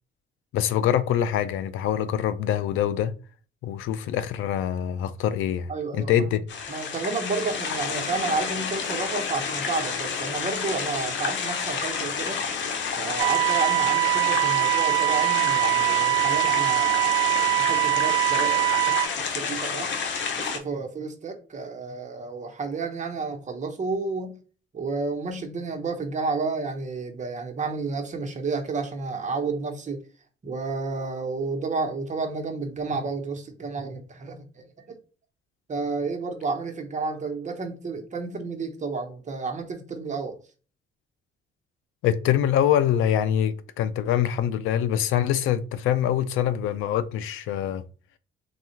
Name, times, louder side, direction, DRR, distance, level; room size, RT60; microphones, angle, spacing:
voice 1, 0.5-3.1 3.6-6.4 42.0-47.8, left 10 dB, 85° left, 0.4 m, -24 dB
voice 2, 5.7-6.3 6.7-12.4 13.0-18.8 19.2-19.9 20.3-24.4 24.7-30.0 30.4-35.0 35.7-40.4, right 4 dB, 35° right, 1.0 m, -31 dB
sound 1, 6.5-20.6, left 6 dB, 70° left, 0.8 m, -30 dB
sound 2, 13.2-19.1, right 19 dB, 85° right, 0.6 m, -23 dB
3.7 x 2.4 x 4.4 m
cardioid pair, 90°, 20 cm